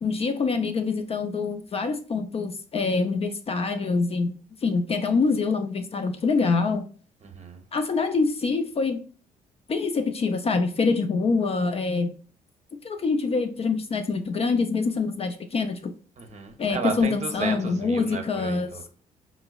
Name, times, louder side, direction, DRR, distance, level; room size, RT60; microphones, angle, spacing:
voice 1, 0.0-4.4 4.6-6.8 7.7-9.0 9.7-12.1 12.8-15.9 16.6-18.7, left 4 dB, 35° left, 0.4 m, -25 dB
voice 2, 16.2-18.9, right 5 dB, 40° right, 0.7 m, -33 dB
4.5 x 2.0 x 2.2 m
hypercardioid pair, 50°, 18 cm